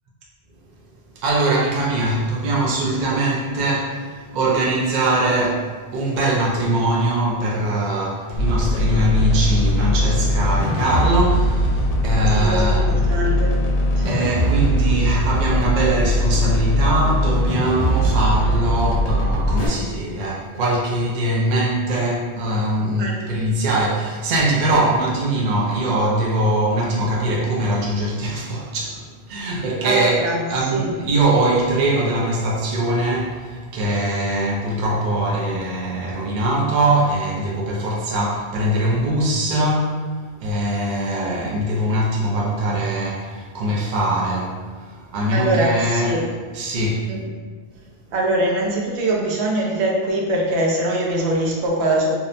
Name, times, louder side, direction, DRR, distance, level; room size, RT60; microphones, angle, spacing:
voice 1, 1.1-13.0 14.0-40.1 40.4-47.1, right 1 dB, 55° right, -4 dB, 0.5 m, -22 dB
sound 1, 8.4-19.7, equal, 90° left, 0.9 m, -20 dB
voice 2, 12.4-13.5 14.0-14.2 23.0-23.2 29.8-30.4 30.7-30.9 45.3-46.2 47.1-47.2 48.1-52.1, right 1 dB, 80° right, -2 dB, 0.9 m, -22 dB
2.7 x 2.1 x 2.5 m, 1.5 s
omnidirectional pair, 1.1 m